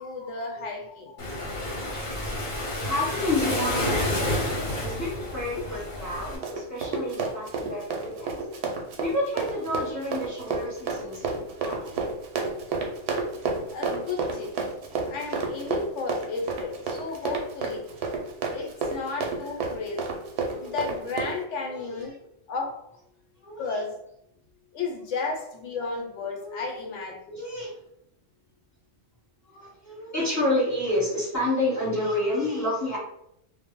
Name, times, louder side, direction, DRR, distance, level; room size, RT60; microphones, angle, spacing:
voice 1, 0.0-1.7 2.7-3.3 4.8-5.0 13.7-14.6 15.1-18.1 18.5-22.1 22.5-22.8 23.6-24.0 24.7-27.4, left 4 dB, 75° left, 1 dB, 0.9 m, -34 dB
Waves surf, 1.2-6.4, left 1 dB, 45° left, 0.8 m, -30 dB
voice 2, 2.2-8.4 9.0-12.0 18.5-18.7 20.5-20.7 21.7-21.9 23.4-23.8 26.4-26.6 27.3-27.7 29.5-33.0, left 1 dB, 15° left, -7 dB, 0.9 m, -30 dB
Run, 6.1-21.4, right 4 dB, 65° right, 0.8 m, -30 dB
2.1 x 2.0 x 3.5 m, 0.77 s
omnidirectional pair, 1.3 m